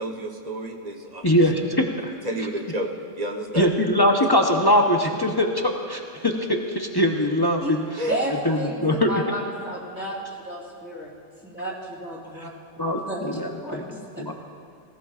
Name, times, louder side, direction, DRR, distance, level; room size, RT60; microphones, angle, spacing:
voice 1, 0.0-1.5 2.2-3.7 5.3-5.4 8.0-8.2, right 1 dB, 40° right, 3 dB, 1.1 m, -30 dB
voice 2, 1.2-2.1 3.6-8.0 8.4-9.1 12.4-12.5 12.8-13.8 14.2-14.3, left 1 dB, 25° left, 2 dB, 0.8 m, -22 dB
voice 3, 8.6-10.2 10.4-11.1 11.4-12.5 12.9-14.0, right 1 dB, 10° right, -6 dB, 2.7 m, -33 dB
18.0 x 17.5 x 2.4 m, 2.5 s
omnidirectional pair, 1.2 m